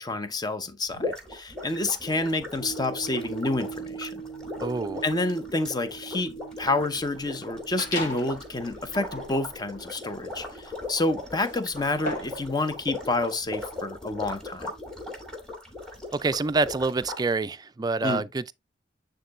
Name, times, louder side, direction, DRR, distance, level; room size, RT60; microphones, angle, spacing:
voice 1, 0.0-4.2 5.0-14.7 18.0-18.2, left 2 dB, 20° left, 0.8 m, -29 dB
sound 1, 0.9-17.2, left 2 dB, 5° left, 2.3 m, -39 dB
sound 2, 2.6-11.0 11.5-11.6, right 6 dB, 80° left, 1.0 m, -42 dB
voice 2, 4.6-5.0 16.1-18.5, right 3 dB, 20° right, 0.3 m, -27 dB
sound 3, 7.8-8.4 8.9-12.5, left 1 dB, 50° left, 2.3 m, -37 dB
9.1 x 3.8 x 3.1 m
head